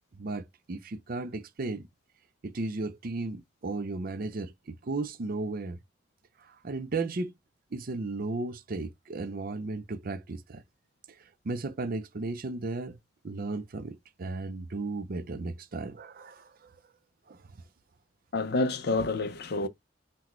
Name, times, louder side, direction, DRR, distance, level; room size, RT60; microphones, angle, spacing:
voice 1, 0.2-1.9 2.4-5.8 6.6-7.3 7.7-10.6 11.4-13.0 13.2-16.5 17.3-17.4, right 3 dB, 45° right, 0.5 m, -35 dB
voice 2, 18.3-19.7, left 2 dB, 55° left, 0.5 m, -28 dB
5.9 x 2.2 x 3.0 m
head